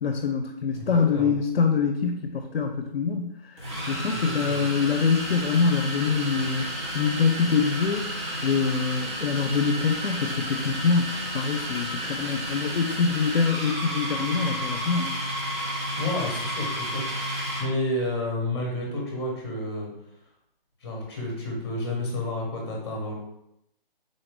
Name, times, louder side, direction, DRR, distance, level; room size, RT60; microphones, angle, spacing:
voice 1, 0.0-3.4 3.9-8.1 8.4-15.2, left 5 dB, 80° left, 5 dB, 0.5 m, -25 dB
voice 2, 0.8-1.3 4.1-4.6 16.0-19.9 20.8-23.1, left 1 dB, 25° left, -1 dB, 1.1 m, -31 dB
sound 1, 2.2-2.4 3.6-17.7, equal, 30° right, 1.1 m, -32 dB
3.8 x 2.5 x 3.5 m, 0.80 s
figure-of-eight pair, 165°, 29 cm